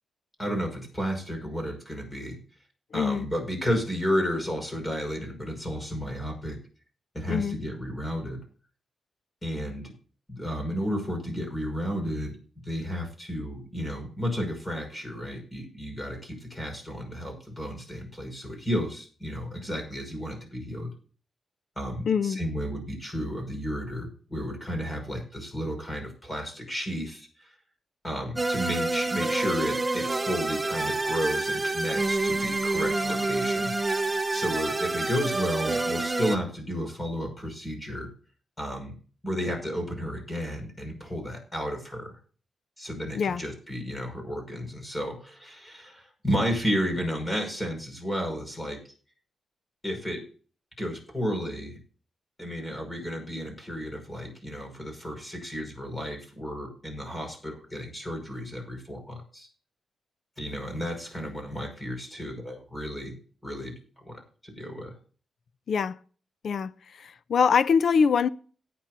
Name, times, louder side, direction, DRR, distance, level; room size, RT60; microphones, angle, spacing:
voice 1, 0.4-2.4 2.9-6.6 7.1-8.4 9.4-9.9 10.3-12.4 12.6-20.9 21.8-27.5 28.0-33.7 34.3-38.1 38.6-38.9 39.2-42.1 42.8-48.8 49.8-50.2 50.8-51.8 52.4-59.5 60.4-63.8 64.0-64.9, equal, 15° left, 5.7 m, -32 dB
voice 2, 2.9-3.3 7.3-7.6 22.1-22.4 43.1-43.4 65.7-66.0 66.4-66.7 67.0-68.3, left 6 dB, 60° left, 0.6 m, -23 dB
sound 1, 28.4-36.4, right 2 dB, 20° right, 0.9 m, -28 dB
17.5 x 9.4 x 2.7 m
cardioid pair, 110°, 0 cm